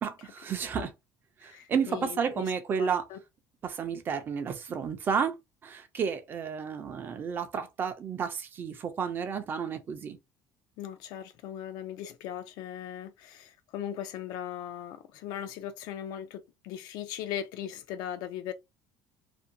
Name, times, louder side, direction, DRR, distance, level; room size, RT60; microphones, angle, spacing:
voice 1, 0.0-0.9 1.4-3.0 3.6-5.4 5.6-10.2, right 6 dB, 30° right, 0.4 m, -31 dB
voice 2, 1.4-2.5 2.8-3.2 10.8-18.5, left 10 dB, 65° left, 0.4 m, -39 dB
2.5 x 2.2 x 2.6 m
cardioid pair, 165°, 7 cm